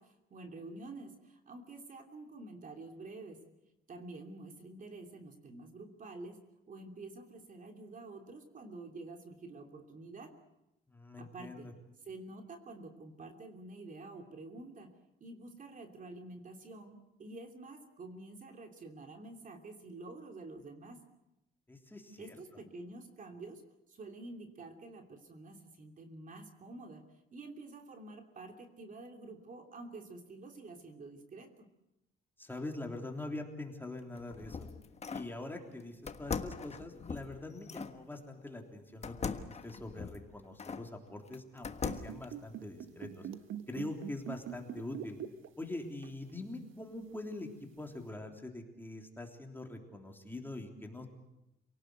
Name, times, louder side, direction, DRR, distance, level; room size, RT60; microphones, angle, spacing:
voice 1, 0.0-3.4 3.9-6.4 6.7-10.3 11.2-11.7 12.0-14.9 15.2-21.0 22.2-23.6 23.9-27.0 27.3-31.7, right 2 dB, 40° right, 4 dB, 3.1 m, -48 dB
voice 2, 10.9-11.7 21.7-22.4 32.4-34.7 35.1-43.3 43.7-45.2 45.6-51.1, left 2 dB, 10° left, 2 dB, 3.4 m, -44 dB
sound 1, 34.0-35.3 36.1-38.0 39.0-40.9 41.3-42.2, left 5 dB, 30° left, 1.4 m, -40 dB
sound 2, 41.7-45.7 46.0-46.3 47.1-47.2, right 10 dB, 70° right, 1.3 m, -43 dB
28.0 x 18.0 x 8.0 m, 0.89 s
cardioid pair, 115°, 21 cm